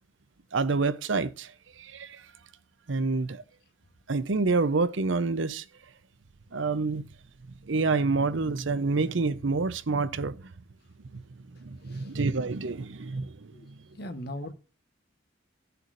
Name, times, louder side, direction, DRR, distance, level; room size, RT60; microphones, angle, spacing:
voice 1, 0.5-1.5 1.8-2.2 2.9-3.4 4.1-5.6 6.5-7.1 7.7-10.5 11.1-11.2 11.6-13.8, right 3 dB, 75° right, 0.7 m, -28 dB
voice 2, 14.0-14.5, left 1 dB, 55° left, 1.3 m, -38 dB
16.0 x 6.8 x 2.6 m
head